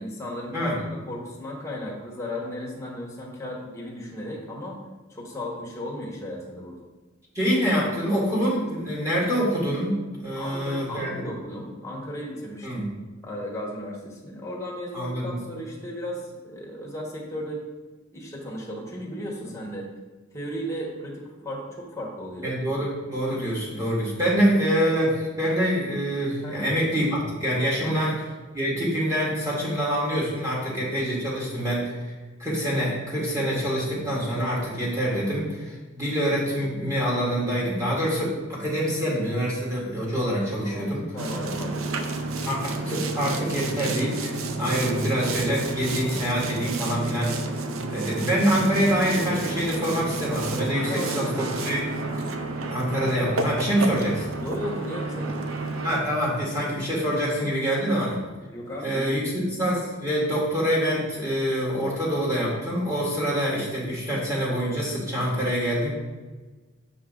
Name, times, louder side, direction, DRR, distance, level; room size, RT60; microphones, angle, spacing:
voice 1, 0.0-4.8 5.1-6.8 10.4-12.9 13.2-17.6 18.1-19.9 20.3-22.5 24.2-24.5 26.4-26.8 27.8-28.0 40.6-41.9 50.8-51.2 54.4-55.4 58.5-59.4, equal, 15° left, -3 dB, 1.5 m, -35 dB
voice 2, 7.3-10.0 10.2-11.2 12.6-12.9 14.9-15.4 22.4-28.1 28.5-31.8 32.4-41.0 42.5-44.3 44.6-47.4 47.9-51.9 52.7-54.3 55.8-58.2 58.8-65.9, equal, 15° right, -6 dB, 2.3 m, -25 dB
Boat Water vehicle, 41.2-56.0, right 3 dB, 85° right, 0.6 m, -30 dB
7.0 x 5.6 x 3.9 m, 1.3 s
head